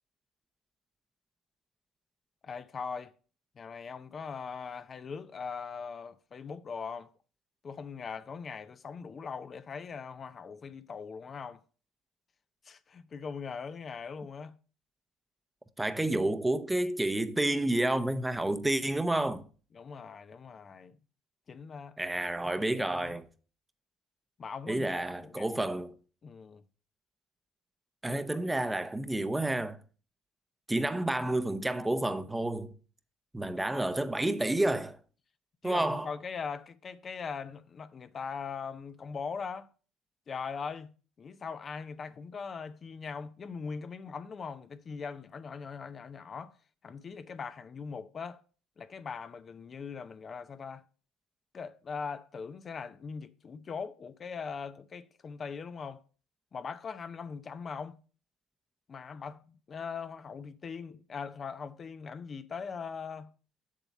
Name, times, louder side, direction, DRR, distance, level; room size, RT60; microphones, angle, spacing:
voice 1, 2.4-3.1 3.6-7.1 7.6-11.6 12.6-14.5 19.7-21.0 21.5-22.0 22.4-23.1 24.4-25.6 26.2-26.6 28.0-28.4 35.6-39.7 40.3-40.9 41.2-46.6 46.8-48.4 48.8-50.8 51.5-56.0 56.5-58.0 58.9-63.3, left 5 dB, 40° left, 0.6 m, -41 dB
voice 2, 15.8-19.5 22.0-23.3 24.7-25.9 28.0-29.8 30.7-32.7 33.3-35.0 35.6-36.1, right 1 dB, 10° right, 0.8 m, -30 dB
7.3 x 7.0 x 4.1 m
supercardioid pair, 75°, 0 cm